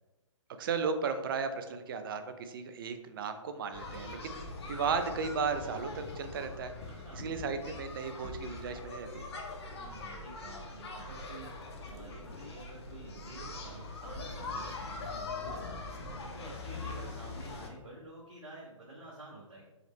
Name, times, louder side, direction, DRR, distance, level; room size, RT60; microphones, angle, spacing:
voice 1, 0.6-4.3 4.7-6.7 7.2-9.3, right 5 dB, 45° right, 9 dB, 0.5 m, -35 dB
sound 1, 3.7-17.7, left 3 dB, 55° left, 0.8 m, -42 dB
voice 2, 6.8-7.2 9.7-19.6, right 2 dB, 80° right, -7 dB, 1.4 m, -50 dB
4.8 x 3.1 x 3.1 m, 1.0 s
figure-of-eight pair, 130°, 17 cm